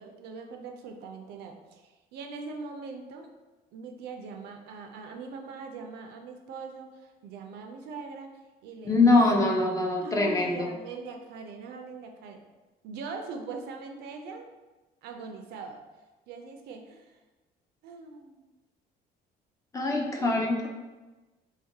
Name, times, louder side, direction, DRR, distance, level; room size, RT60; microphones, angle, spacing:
voice 1, 0.0-3.3 3.7-8.3 8.6-9.2 10.0-12.4 12.8-14.5 15.0-15.8 16.3-17.2 17.8-18.4 20.2-20.7, right 4 dB, 75° right, 4 dB, 0.4 m, -41 dB
voice 2, 8.8-10.7 19.7-20.7, left 2 dB, 20° left, 1 dB, 0.3 m, -23 dB
2.4 x 2.2 x 2.7 m, 1.2 s
cardioid pair, 110°, 17 cm